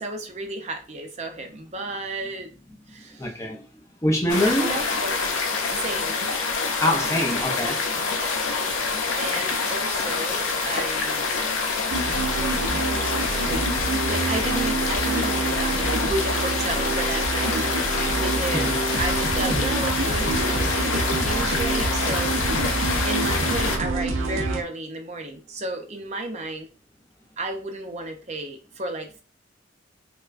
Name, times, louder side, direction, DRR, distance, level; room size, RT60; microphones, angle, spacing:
voice 1, 0.0-2.5 2.9-3.3 4.3-5.2 5.7-6.3 8.1-8.4 9.1-11.3 12.3-13.5 13.9-17.6 18.2-18.7 19.0-22.5 23.0-26.7 27.4-29.2, right 2 dB, 35° right, 0.5 m, -33 dB
voice 2, 2.9-4.7 6.4-7.8 18.5-18.8 19.5-19.7, left 1 dB, 15° left, 0.5 m, -26 dB
sound 1, 4.3-23.8, left 4 dB, 85° left, 0.6 m, -26 dB
sound 2, 11.9-24.6, right 3 dB, 85° right, 0.6 m, -27 dB
4.4 x 2.1 x 2.5 m
head